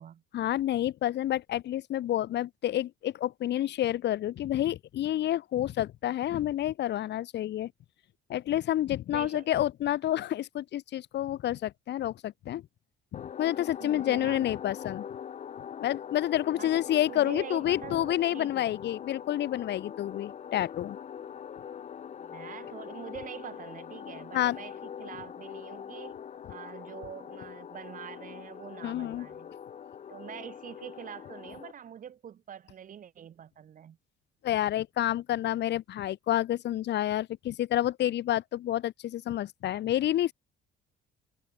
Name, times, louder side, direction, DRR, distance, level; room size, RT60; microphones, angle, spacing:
voice 1, 0.3-7.7 8.3-12.6 13.1-15.1 15.8-21.0 24.3-24.6 28.8-29.3 34.4-40.3, left 12 dB, 55° left, 2.8 m, -29 dB
voice 2, 9.1-9.5 13.8-14.5 16.6-16.8 17.1-18.7 22.2-26.2 26.5-29.5 30.1-34.0, right 9 dB, 40° right, 4.4 m, -44 dB
sound 1, 13.1-31.7, left 8 dB, 35° left, 1.5 m, -43 dB
cardioid pair, 170°, 21 cm